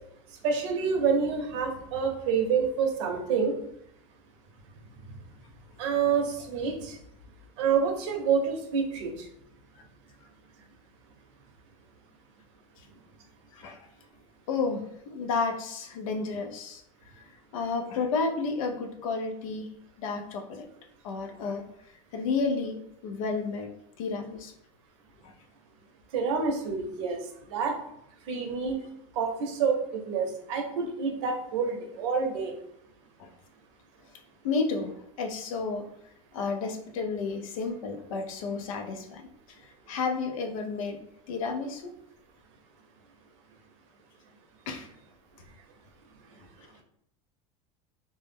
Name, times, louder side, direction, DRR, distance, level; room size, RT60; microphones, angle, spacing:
voice 1, 0.4-3.5 5.8-7.0 7.6-9.1 26.1-27.2 27.5-27.8 28.3-28.8 29.2-32.5, right 6 dB, 60° right, 3 dB, 0.6 m, -27 dB
voice 2, 14.5-16.8 17.5-19.7 20.0-20.7 21.0-21.6 22.1-22.8 23.0-23.7 24.0-24.5 34.4-34.9 35.2-35.8 36.3-39.2 39.9-41.0 41.3-41.9 44.7-44.9, left 4 dB, 85° left, 4 dB, 0.5 m, -31 dB
2.1 x 2.0 x 3.3 m, 0.74 s
supercardioid pair, 170°, 17 cm